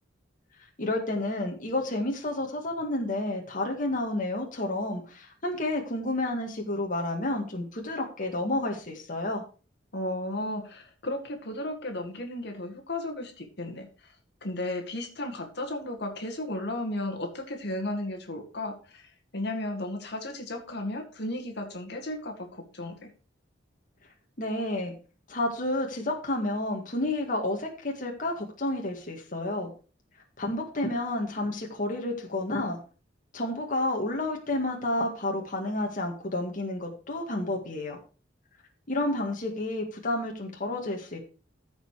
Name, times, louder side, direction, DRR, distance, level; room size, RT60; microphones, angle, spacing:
voice 1, 0.8-9.4 24.4-24.9 25.3-29.7 30.4-32.8 33.3-38.0 38.9-41.2, left 1 dB, 45° left, 1 dB, 1.9 m, -30 dB
voice 2, 9.9-14.2 14.4-23.1, left 1 dB, 60° left, 3 dB, 2.0 m, -34 dB
14.5 x 5.3 x 4.9 m, 0.36 s
head